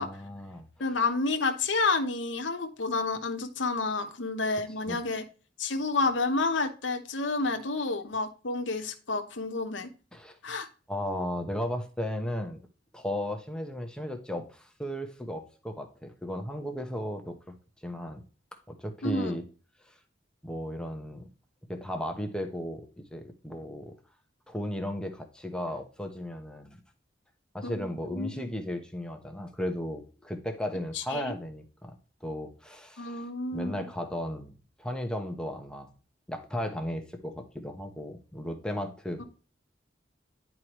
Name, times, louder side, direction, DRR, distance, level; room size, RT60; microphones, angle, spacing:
voice 1, 0.0-0.7 4.9-5.0 10.1-10.4 10.9-12.6 12.9-17.3 17.8-18.2 18.7-19.4 19.8-19.9 20.4-21.3 21.7-23.9 24.5-26.8 27.5-31.9 32.2-33.2 33.5-35.9 36.3-39.2, left 1 dB, 5° left, 4 dB, 1.0 m, -35 dB
voice 2, 0.8-5.2 5.6-9.9 10.4-10.7 19.0-19.3 27.6-28.6 30.9-31.3 33.0-33.9, left 3 dB, 75° left, 6 dB, 1.1 m, -30 dB
10.5 x 4.8 x 3.0 m, 0.36 s
head